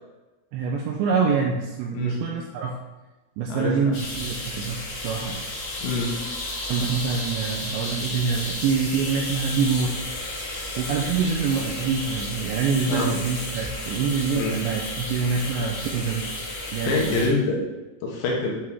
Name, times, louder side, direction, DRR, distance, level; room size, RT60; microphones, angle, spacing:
voice 1, 0.5-2.8 3.4-5.5 6.7-10.0 10.8-16.2 16.7-17.3, right 5 dB, 85° right, 0 dB, 2.6 m, -25 dB
voice 2, 3.5-3.9 5.8-6.1 12.9-13.1 14.3-14.5 16.8-17.6 18.0-18.6, left 3 dB, 70° left, -2 dB, 3.1 m, -25 dB
sound 1, 3.9-17.3, left 2 dB, 50° left, 1.5 m, -32 dB
9.5 x 5.4 x 3.6 m, 1.1 s
omnidirectional pair, 5.8 m